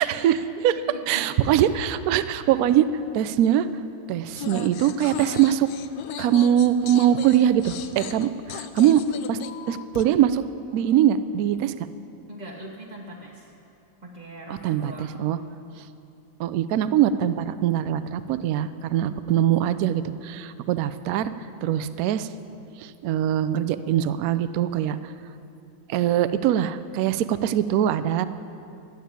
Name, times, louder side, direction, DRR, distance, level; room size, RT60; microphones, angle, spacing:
voice 1, 0.0-0.7 1.1-2.9 3.1-3.7 4.1-5.7 6.2-9.0 9.3-9.4 9.7-10.4 10.7-11.7 14.5-15.4 16.4-21.3 21.6-22.3 22.8-25.1 25.9-28.2, right 11 dB, 85° right, 13 dB, 0.8 m, -22 dB
voice 2, 0.5-1.2 12.3-13.5 14.0-15.2, right 1 dB, 30° right, -3 dB, 0.8 m, -41 dB
sound 1, 4.4-10.0, left 9 dB, 70° left, 0.9 m, -37 dB
12.5 x 8.7 x 8.9 m, 2.6 s
omnidirectional pair, 2.1 m